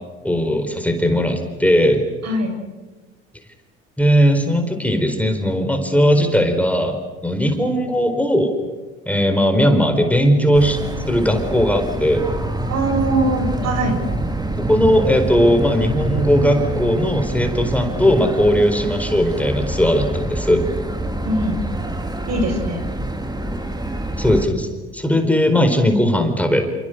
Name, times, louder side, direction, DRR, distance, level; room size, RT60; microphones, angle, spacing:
voice 1, 0.2-2.0 4.0-7.0 7.2-8.5 9.1-10.8 11.1-12.2 14.7-20.6 24.2-26.7, equal, 5° left, 5 dB, 4.4 m, -18 dB
voice 2, 2.2-2.6 12.7-14.0 21.2-21.6 22.3-22.8, right 1 dB, 60° right, 4 dB, 7.3 m, -21 dB
sound 1, 10.5-24.4, right 1 dB, 15° right, 3.0 m, -26 dB
28.0 x 27.0 x 6.6 m, 1.2 s
hypercardioid pair, 65°, 30 cm